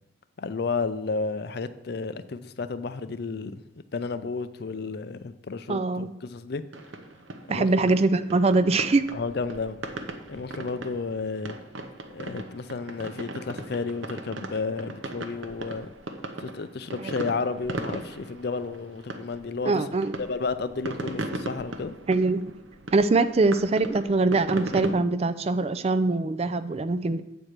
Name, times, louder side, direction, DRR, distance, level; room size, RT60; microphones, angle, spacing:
voice 1, 0.4-3.6 3.9-6.6 7.5-7.9 9.1-9.8 10.3-11.6 12.1-15.9 16.4-19.8 20.2-21.9, left 4 dB, 55° left, 0.5 m, -32 dB
voice 2, 5.7-6.1 7.5-9.1 19.6-20.2 22.1-22.5 22.9-27.2, right 3 dB, 30° right, 0.4 m, -23 dB
sound 1, 6.7-24.9, right 2 dB, 85° right, 0.8 m, -37 dB
8.5 x 4.5 x 6.5 m
head